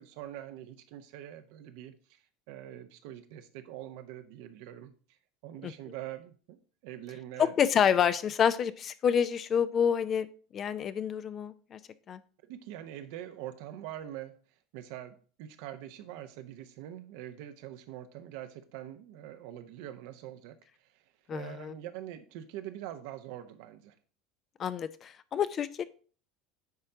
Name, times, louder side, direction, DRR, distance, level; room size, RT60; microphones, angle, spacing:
voice 1, 0.0-2.2 2.5-4.9 5.4-7.5 12.5-14.4 14.7-20.6 20.8-21.0 21.3-23.9, right 12 dB, 65° right, 8 dB, 0.9 m, -44 dB
voice 2, 7.4-10.3 10.5-11.8 12.1-12.2 21.3-21.7 24.6-25.8, left 8 dB, 40° left, 14 dB, 0.6 m, -28 dB
9.6 x 4.4 x 3.8 m, 0.41 s
hypercardioid pair, 75°, 0 cm